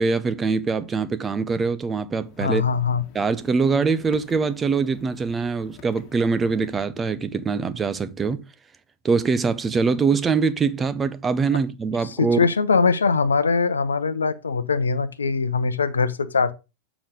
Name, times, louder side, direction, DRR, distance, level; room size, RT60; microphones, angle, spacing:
voice 1, 0.0-2.6 3.1-8.5 9.0-12.4, right 4 dB, 20° right, 0.6 m, -23 dB
sound 1, 2.2-6.8, left 8 dB, 40° left, 1.7 m, -47 dB
voice 2, 2.4-3.0 12.2-16.5, left 5 dB, 75° left, 0.7 m, -21 dB
7.2 x 5.0 x 5.2 m
figure-of-eight pair, 90°, 0 cm